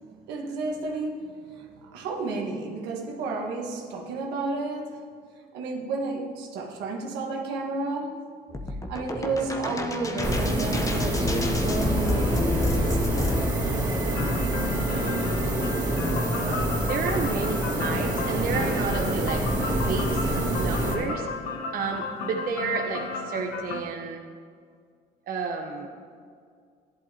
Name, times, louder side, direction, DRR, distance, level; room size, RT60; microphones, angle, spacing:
voice 1, 0.3-5.0 5.5-8.2 8.7-13.4, right 3 dB, 90° right, 1.6 m, -32 dB
sound 1, 8.5-13.5, left 2 dB, 20° left, 0.9 m, -29 dB
sound 2, 10.2-21.0, right 1 dB, 25° right, 2.7 m, -26 dB
sound 3, 14.1-23.8, left 5 dB, 90° left, 0.9 m, -34 dB
voice 2, 16.4-19.4 19.8-20.2 20.5-21.3 21.7-24.2 25.3-25.9, right 5 dB, 60° right, 1.0 m, -31 dB
14.0 x 11.0 x 3.0 m
cardioid pair, 110°, 17 cm